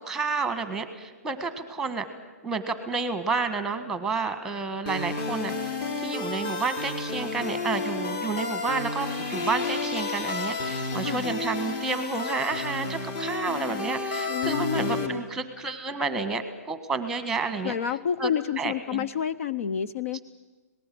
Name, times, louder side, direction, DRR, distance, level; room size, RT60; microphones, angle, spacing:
voice 1, 0.0-2.1 2.4-17.7 18.2-18.3 18.6-19.1 20.1-20.2, right 4 dB, 5° right, 10 dB, 1.6 m, -30 dB
sound 1, 4.9-15.1, left 3 dB, 30° left, 3.2 m, -31 dB
voice 2, 11.0-11.4 14.3-15.2 17.6-20.2, left 8 dB, 55° left, 14 dB, 0.8 m, -29 dB
25.5 x 19.0 x 7.8 m, 1.3 s
hypercardioid pair, 155°, 9 cm